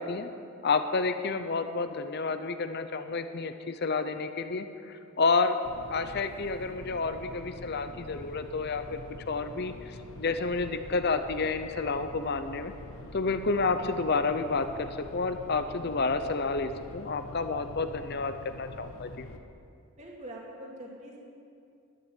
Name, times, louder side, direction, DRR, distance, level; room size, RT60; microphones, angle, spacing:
voice 1, 0.6-5.6 5.9-9.0 9.3-12.7 13.1-18.3 18.6-19.3, left 4 dB, 45° left, 9 dB, 0.6 m, -30 dB
sound 1, 5.6-19.4, left 2 dB, 70° left, 1.1 m, -45 dB
voice 2, 20.0-21.2, right 1 dB, 30° right, -2 dB, 2.4 m, -43 dB
12.0 x 10.0 x 9.2 m, 2.5 s
head